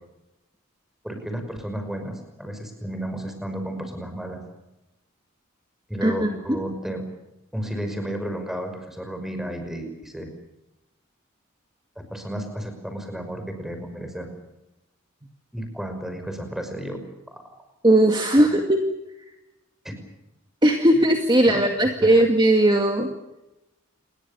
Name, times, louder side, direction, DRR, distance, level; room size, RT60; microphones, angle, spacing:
voice 1, 1.0-4.4 5.9-7.0 7.5-10.3 12.0-14.3 15.5-17.0 17.3-17.4 18.4-18.5 19.8-19.9 21.5-21.6 22.0-22.2, right 1 dB, ahead, 6 dB, 5.7 m, -32 dB
voice 2, 6.0-6.6 17.8-18.8 20.6-23.1, right 1 dB, 20° right, 4 dB, 2.1 m, -18 dB
29.0 x 21.5 x 6.9 m, 0.95 s
head